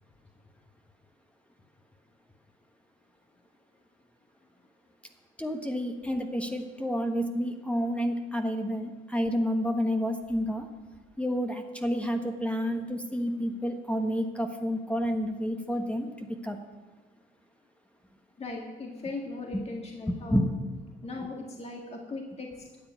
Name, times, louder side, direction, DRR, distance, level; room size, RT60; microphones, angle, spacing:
voice 1, 5.4-10.7 11.2-16.1 16.4-16.6 20.1-20.5, equal, 5° left, 4 dB, 1.3 m, -29 dB
voice 2, 18.4-20.5 21.0-22.7, left 3 dB, 30° left, 0 dB, 1.9 m, -38 dB
12.5 x 7.9 x 9.4 m, 1.3 s
cardioid pair, 90°, 20 cm